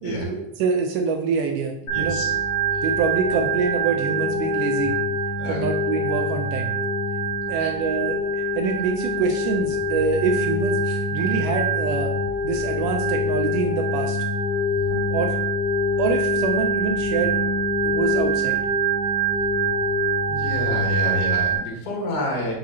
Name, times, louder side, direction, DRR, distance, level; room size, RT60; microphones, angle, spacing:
voice 1, 0.0-2.2 2.8-4.9 5.5-6.7 7.5-8.3 8.5-12.1 12.4-14.2 15.1-15.4 16.0-17.4 17.8-18.6, right 5 dB, 80° right, 4 dB, 1.9 m, -25 dB
voice 2, 1.9-2.3 2.7-2.8 5.4-5.6 7.6-7.7 20.3-22.5, left 1 dB, 85° left, -2 dB, 3.3 m, -28 dB
Organ, 1.9-21.6, right 1 dB, 45° left, 1.6 m, -24 dB
8.6 x 4.1 x 2.8 m, 0.83 s
omnidirectional pair, 4.2 m